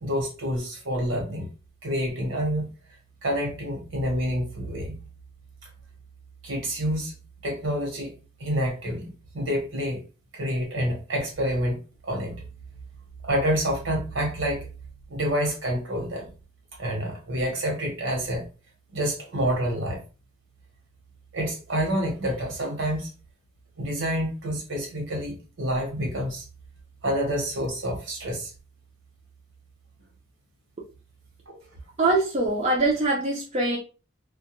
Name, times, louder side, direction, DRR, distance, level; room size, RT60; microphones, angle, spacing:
voice 1, 0.0-1.5 1.8-2.7 3.2-5.0 6.4-7.2 7.4-10.0 10.3-12.4 13.2-14.7 15.1-16.3 16.8-18.4 18.9-20.0 21.3-23.1 23.8-26.4 27.0-28.5, equal, 70° right, 1.1 m, -28 dB
voice 2, 32.0-33.8, right 2 dB, 35° right, 0.5 m, -23 dB
2.2 x 2.2 x 2.9 m
head